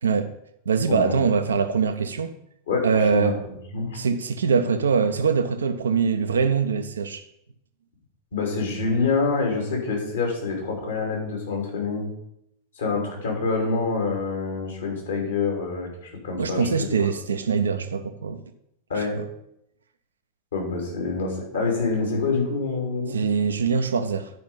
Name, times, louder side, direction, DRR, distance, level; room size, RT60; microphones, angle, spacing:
voice 1, 0.7-2.3 2.8-3.4 3.9-7.2 16.4-18.4 23.1-24.3, right 5 dB, 70° right, 0.6 m, -23 dB
voice 2, 2.7-4.0 8.3-12.1 12.7-17.1 18.9-19.2 20.5-23.2, left 4 dB, 65° left, 3.1 m, -26 dB
11.0 x 5.2 x 5.3 m
figure-of-eight pair, 90°, 0 cm